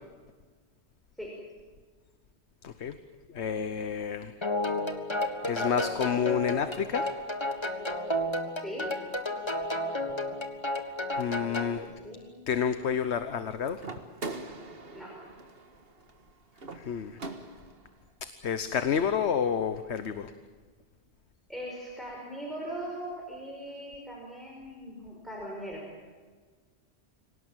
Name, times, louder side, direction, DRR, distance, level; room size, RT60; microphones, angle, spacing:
voice 1, 2.6-3.0 3.3-4.3 5.4-7.1 11.2-11.9 12.5-13.8 16.7-17.2 18.2-20.3, left 7 dB, 85° left, 10 dB, 1.2 m, -29 dB
sound 1, 4.4-11.8, left 1 dB, 25° left, 1.7 m, -32 dB
voice 2, 8.6-8.9 11.6-12.4 14.9-15.2 21.5-25.9, right 1 dB, ahead, -3 dB, 5.3 m, -40 dB
sound 2, 13.8-17.9, right 3 dB, 60° right, 1.9 m, -42 dB
26.5 x 18.0 x 9.0 m, 1.5 s
omnidirectional pair, 1.1 m